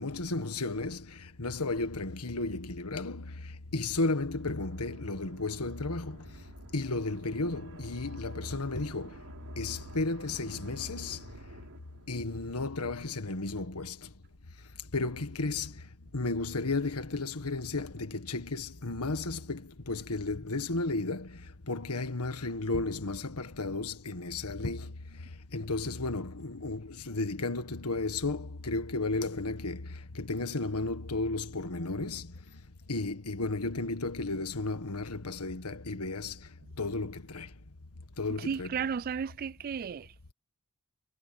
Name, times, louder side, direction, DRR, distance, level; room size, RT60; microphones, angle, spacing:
voice 1, 0.0-6.3 6.7-9.3 9.6-11.2 12.1-14.1 14.9-15.8 16.1-32.3 32.9-36.5 36.8-37.5 38.2-38.9, left 3 dB, 85° left, 1.7 m, -34 dB
sound 1, 3.9-12.4, right 1 dB, 65° right, 4.0 m, -51 dB
voice 2, 38.4-40.1, right 6 dB, 40° right, 0.3 m, -34 dB
head